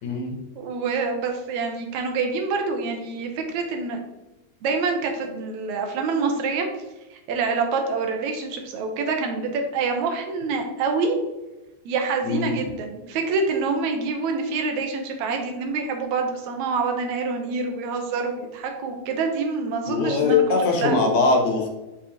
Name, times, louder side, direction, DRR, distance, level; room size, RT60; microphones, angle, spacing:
voice 1, 0.0-0.4 12.2-12.5 19.9-21.7, left 4 dB, 70° left, 2 dB, 2.3 m, -21 dB
voice 2, 0.6-4.0 4.6-6.7 7.1-11.2 11.9-20.4 20.8-21.0, right 4 dB, 80° right, 3 dB, 2.1 m, -26 dB
5.8 x 5.8 x 2.8 m, 1.0 s
omnidirectional pair, 3.4 m